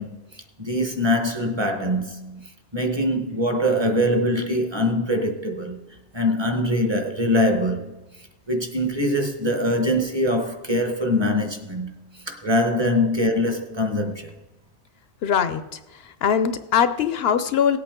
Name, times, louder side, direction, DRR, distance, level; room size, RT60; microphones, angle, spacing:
voice 1, 0.0-5.8 6.1-7.9 8.5-14.3, left 1 dB, 25° right, 1.0 m, -23 dB
voice 2, 15.2-15.8 16.0-17.8, left 8 dB, 70° left, 0.8 m, -21 dB
17.5 x 8.3 x 3.7 m
omnidirectional pair, 1.1 m